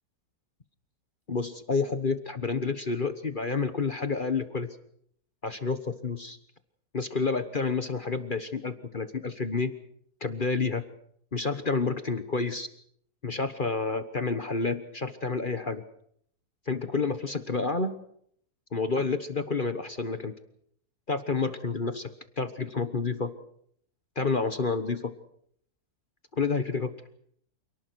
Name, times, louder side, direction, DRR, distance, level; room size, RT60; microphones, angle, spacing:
voice 1, 1.3-4.7 5.4-6.4 6.9-9.7 10.2-10.8 11.3-12.7 13.2-15.8 16.7-17.9 18.7-20.3 21.1-22.1 22.4-23.3 24.2-25.1 26.3-26.9, left 4 dB, 35° left, 10 dB, 1.3 m, -29 dB
28.0 x 19.0 x 6.2 m, 0.67 s
omnidirectional pair, 1.6 m